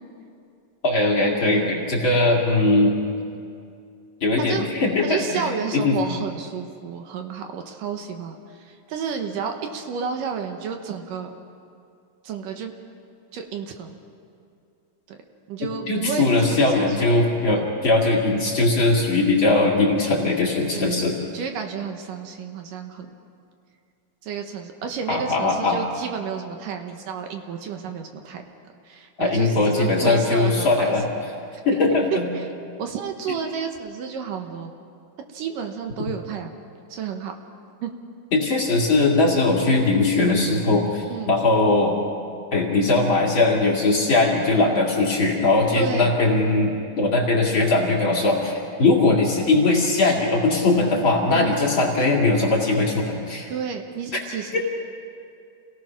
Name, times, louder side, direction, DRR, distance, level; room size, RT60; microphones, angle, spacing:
voice 1, 0.8-2.9 4.2-5.4 5.7-6.2 15.9-21.1 25.1-25.8 29.2-31.0 31.6-32.3 38.3-42.0 42.5-48.5 48.8-53.5, left 2 dB, 40° left, -2 dB, 2.8 m, -20 dB
voice 2, 5.0-11.3 12.2-12.7 13.3-14.0 15.1-15.2 15.5-17.1 17.5-17.7 20.7-23.1 24.2-28.4 28.8-30.9 32.1-32.5 32.8-34.7 35.3-36.6 36.9-37.3 37.8-37.9 41.1-41.4 45.8-46.1 51.3-51.6 53.5-54.6, right 6 dB, 70° right, 5 dB, 2.6 m, -31 dB
28.0 x 18.0 x 6.0 m, 2.4 s
omnidirectional pair, 4.2 m